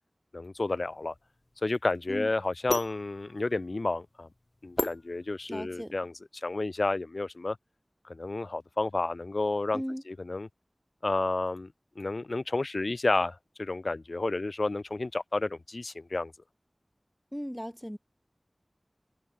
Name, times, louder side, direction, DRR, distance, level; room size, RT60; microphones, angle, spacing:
voice 1, 0.3-1.1 1.6-4.3 4.6-7.6 8.0-10.5 11.0-16.3, left 2 dB, 80° left, 2.9 m, -31 dB
sound 1, 0.6-5.8, left 2 dB, 50° left, 2.1 m, -37 dB
voice 2, 5.5-5.9 9.7-10.0 17.3-18.0, equal, ahead, 4.2 m, -36 dB
wide cardioid pair, 40°, 0 cm